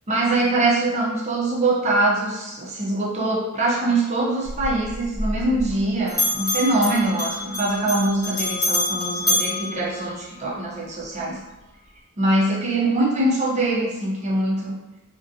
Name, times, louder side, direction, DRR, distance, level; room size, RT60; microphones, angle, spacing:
voice 1, 0.1-11.4 12.2-14.7, right 2 dB, 30° right, -5 dB, 0.5 m, -23 dB
Bell, 4.4-5.8 6.1-10.6, left 1 dB, 15° left, 0.6 m, -26 dB
2.4 x 2.1 x 2.6 m, 1.1 s
head